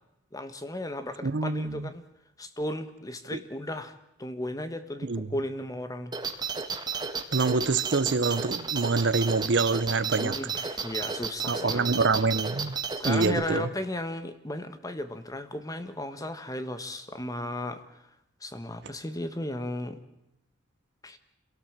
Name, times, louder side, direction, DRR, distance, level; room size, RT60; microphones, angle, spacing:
voice 1, 0.3-2.0 2.4-3.9 4.2-6.1 10.2-12.0 13.0-18.0 18.4-20.0 21.0-21.2, left 1 dB, 20° left, 1.4 m, -35 dB
voice 2, 1.2-1.9 5.0-5.3 7.3-10.4 11.5-12.8 13.0-13.7, right 4 dB, 60° right, 0.7 m, -26 dB
sound 1, 6.1-13.3, right 5 dB, 20° right, 1.6 m, -32 dB
26.5 x 17.5 x 7.5 m
head